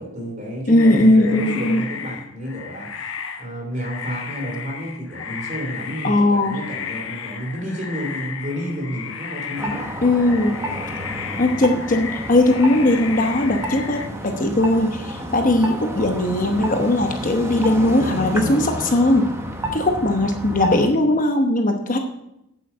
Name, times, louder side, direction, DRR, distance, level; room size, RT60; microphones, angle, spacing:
voice 1, 0.0-2.9 3.4-9.8, equal, 35° right, 0 dB, 3.2 m, -30 dB
voice 2, 0.7-1.8 6.0-6.6 10.0-10.5 11.4-19.2 19.7-22.0, left 1 dB, 35° left, 4 dB, 0.9 m, -18 dB
sound 1, 0.8-14.1, left 6 dB, 65° left, 1.0 m, -34 dB
sound 2, 9.6-20.9, right 1 dB, 10° right, 0.9 m, -30 dB
8.7 x 7.8 x 5.6 m, 0.83 s
head